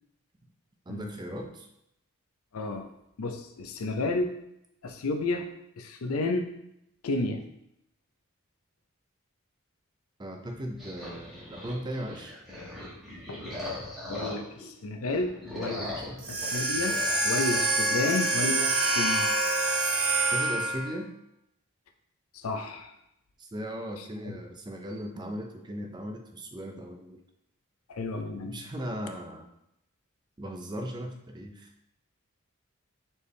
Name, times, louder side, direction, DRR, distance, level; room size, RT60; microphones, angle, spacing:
voice 1, 0.9-1.7 10.2-12.3 15.8-16.3 20.3-21.1 23.4-27.2 28.4-29.5 30.4-31.7, equal, 20° right, 3 dB, 0.5 m, -37 dB
voice 2, 2.5-2.9 3.2-4.3 4.8-5.5 5.8-6.5 7.0-7.4 13.3-13.4 14.1-16.0 16.3-17.0 17.2-19.3 22.3-22.9 24.0-24.4 27.9-28.6, left 2 dB, 85° left, 6 dB, 0.5 m, -31 dB
sound 1, 10.8-14.7 15.0-17.2, left 1 dB, ahead, 1.3 m, -39 dB
sound 2, 16.2-21.0, right 2 dB, 85° right, 1.0 m, -26 dB
4.3 x 3.4 x 3.2 m, 0.79 s
head